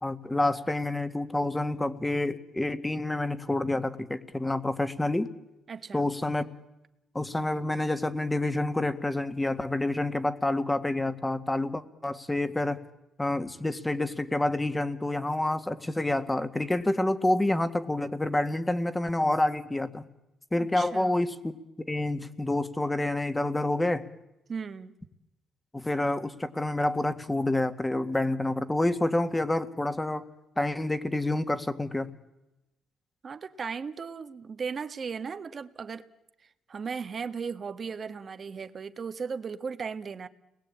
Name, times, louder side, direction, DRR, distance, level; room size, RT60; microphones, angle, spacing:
voice 1, 0.0-5.3 5.9-6.5 7.2-12.8 13.2-20.0 20.5-21.4 21.8-24.1 25.7-30.2 30.6-32.1, left 2 dB, 15° left, 1.9 m, -28 dB
voice 2, 5.7-6.1 20.6-21.2 24.5-24.9 33.2-36.1 36.7-40.3, right 5 dB, 45° right, 1.5 m, -36 dB
30.0 x 21.0 x 8.7 m
cardioid pair, 90°, 0 cm